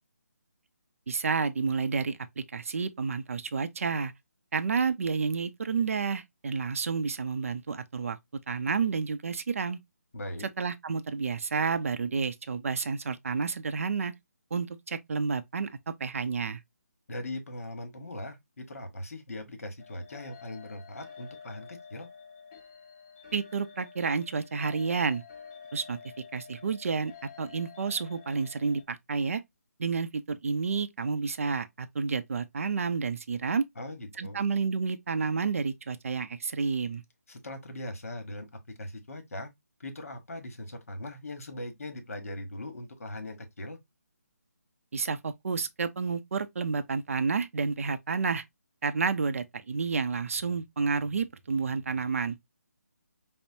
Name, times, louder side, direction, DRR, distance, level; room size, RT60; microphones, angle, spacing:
voice 1, 1.1-4.1 4.5-8.2 8.5-9.8 10.4-14.1 14.5-16.6 23.3-25.2 25.7-26.0 26.3-27.1 27.4-29.4 29.8-33.7 34.2-37.0 44.9-48.4 48.8-52.4, right 5 dB, 55° right, 0.5 m, -30 dB
voice 2, 10.1-10.5 17.1-22.1 33.8-34.4 37.3-38.5 38.8-39.5 39.8-43.8, left 1 dB, 60° left, 1.2 m, -40 dB
sound 1, 19.8-28.8, left 7 dB, 30° left, 1.1 m, -50 dB
5.3 x 2.0 x 2.6 m
figure-of-eight pair, 150°, 9 cm